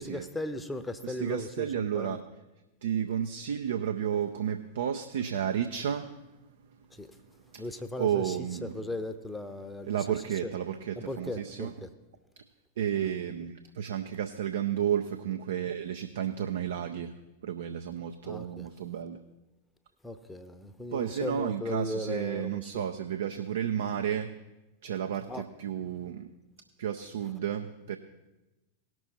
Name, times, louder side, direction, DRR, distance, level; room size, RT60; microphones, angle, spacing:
voice 1, 0.0-2.2 6.9-7.2 7.6-10.0 10.4-10.5 11.0-11.9 13.0-13.1 18.2-18.7 20.0-22.8 25.3-25.4, left 2 dB, 5° left, 0.7 m, -37 dB
voice 2, 1.0-2.2 2.8-6.2 7.5-7.6 8.0-8.8 9.9-11.7 12.4-12.5 12.8-17.1 17.4-19.2 20.9-24.3 24.8-26.3 26.8-28.0, right 9 dB, 60° right, 0.5 m, -32 dB
18.0 x 6.2 x 4.2 m
figure-of-eight pair, 90°, 0 cm